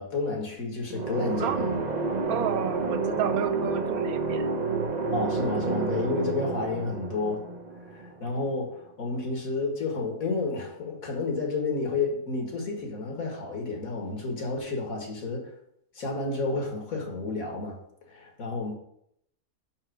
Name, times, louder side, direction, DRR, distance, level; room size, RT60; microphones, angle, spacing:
voice 1, 0.0-1.8 5.1-7.4 7.9-15.5 16.0-17.8 18.1-18.7, left 3 dB, 70° left, 2.1 m, -31 dB
sound 1, 0.9-8.6, right 4 dB, 35° right, 0.8 m, -30 dB
voice 2, 2.3-4.5, right 9 dB, 85° right, 1.2 m, -30 dB
5.7 x 5.7 x 6.3 m
omnidirectional pair, 1.5 m